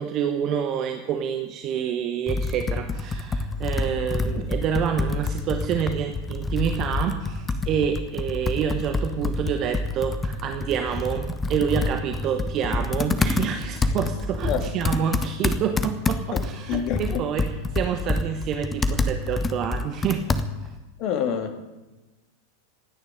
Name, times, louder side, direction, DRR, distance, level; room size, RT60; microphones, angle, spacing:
voice 1, 0.0-20.2 20.6-20.7, right 8 dB, 35° right, 6 dB, 1.1 m, -28 dB
Computer keyboard, 2.3-20.8, left 3 dB, 15° left, 1.0 m, -27 dB
voice 2, 16.7-17.2 21.0-21.6, left 8 dB, 40° left, 6 dB, 2.1 m, -27 dB
26.0 x 10.0 x 5.2 m, 1.1 s
figure-of-eight pair, 90°, 0 cm